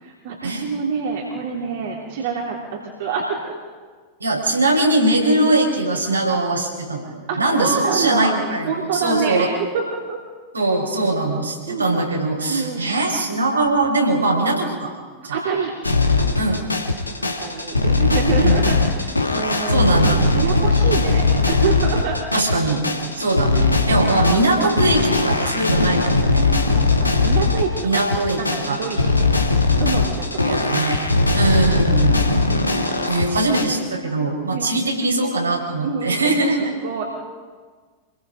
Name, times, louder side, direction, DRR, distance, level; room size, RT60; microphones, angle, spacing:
voice 1, 0.0-3.5 7.3-8.3 8.6-10.2 11.7-12.0 12.5-12.9 15.3-15.7 17.2-19.9 20.3-22.2 23.3-23.4 23.9-24.2 26.5-29.3 29.8-31.4 34.5-34.7 35.8-36.3 36.8-37.0, right 5 dB, 55° right, -1 dB, 3.0 m, -26 dB
voice 2, 4.2-9.5 10.5-14.9 15.2-15.4 16.4-16.7 18.4-18.7 19.7-20.3 22.3-22.9 23.1-26.5 27.8-28.4 28.7-28.8 30.5-31.0 31.3-32.2 33.1-36.7, right 2 dB, 80° right, -1 dB, 5.4 m, -21 dB
sound 1, 15.8-33.6, left 3 dB, 85° left, 2.0 m, -19 dB
27.5 x 21.5 x 5.1 m, 1.5 s
figure-of-eight pair, 90°, 0 cm